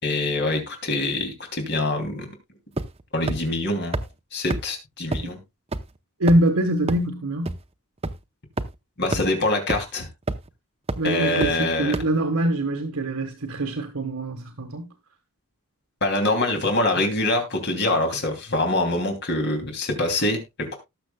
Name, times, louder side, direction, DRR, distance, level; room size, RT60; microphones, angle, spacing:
voice 1, 0.0-2.3 3.1-4.0 4.3-5.4 9.0-10.1 11.0-11.9 16.0-20.7, left 2 dB, 50° left, 2.9 m, -24 dB
sound 1, 2.8-3.0 3.3-3.4 3.9-4.0 4.5-4.6 5.1-5.2 5.7-5.8 6.3-6.5 6.9-7.0 7.5-7.6 8.0-8.1 8.6-8.7 9.1-9.2 9.7-9.8 10.3-10.5 10.9-11.0 11.4-11.5 11.9-12.0, right 2 dB, 25° right, 0.7 m, -25 dB
voice 2, 6.2-7.5 11.0-14.9 17.8-17.9, right 1 dB, 75° right, 1.5 m, -24 dB
19.0 x 6.9 x 2.2 m
head